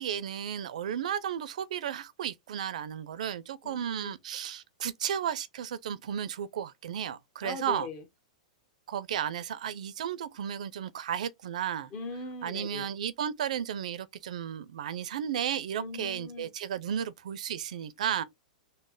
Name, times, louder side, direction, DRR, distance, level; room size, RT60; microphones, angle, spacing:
voice 1, 0.0-7.9 8.9-11.9 12.4-18.2, right 9 dB, 80° right, 0.5 m, -34 dB
voice 2, 3.6-4.1 7.4-8.0 11.9-12.9 15.8-16.5, left 3 dB, 35° left, 0.9 m, -40 dB
3.1 x 2.1 x 3.7 m
hypercardioid pair, 140°, 4 cm